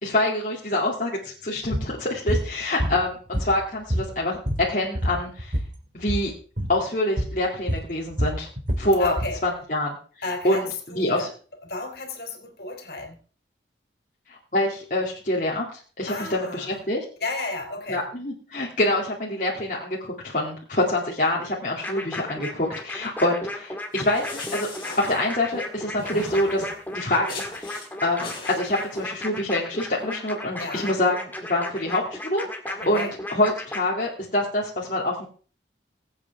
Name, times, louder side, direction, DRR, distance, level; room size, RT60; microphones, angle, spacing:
voice 1, 0.0-4.4 4.7-5.6 5.9-6.3 6.7-8.5 8.8-9.1 9.4-10.0 10.4-11.3 14.3-15.7 16.0-17.0 17.9-24.7 25.0-26.6 26.9-32.4 32.9-35.2, left 1 dB, 45° left, -4 dB, 2.5 m, -26 dB
sound 1, 1.7-1.9 2.3-2.5 2.8-3.6 3.9-5.7 6.0-6.3 6.6-6.8 7.2-7.4 7.7-9.4, equal, 45° right, 2.1 m, -26 dB
voice 2, 9.0-9.4 10.2-11.3 11.6-13.2 16.1-16.8 17.2-18.0 30.6-30.9 32.9-33.1, left 2 dB, 65° left, 3 dB, 3.4 m, -32 dB
sound 2, 21.8-33.8, left 1 dB, 10° left, 1.9 m, -35 dB
sound 3, 23.9-25.6 26.0-26.8 27.3-27.9 28.2-29.0, left 3 dB, 25° left, 3.7 m, -38 dB
22.0 x 8.5 x 3.5 m, 0.40 s
head